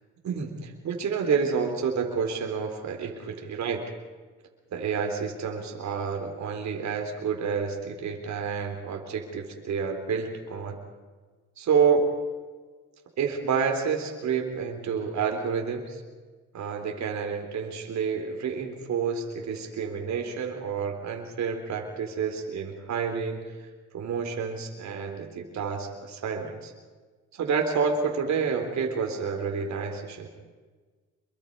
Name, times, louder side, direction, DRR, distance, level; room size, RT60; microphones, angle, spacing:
voice 1, 0.2-3.8 4.7-10.8 11.6-12.1 13.2-16.0 16.5-23.4 23.9-26.7 27.3-30.3, right 6 dB, 65° right, 3 dB, 3.6 m, -29 dB
26.0 x 23.0 x 5.4 m, 1.4 s
cardioid pair, 90°, 30 cm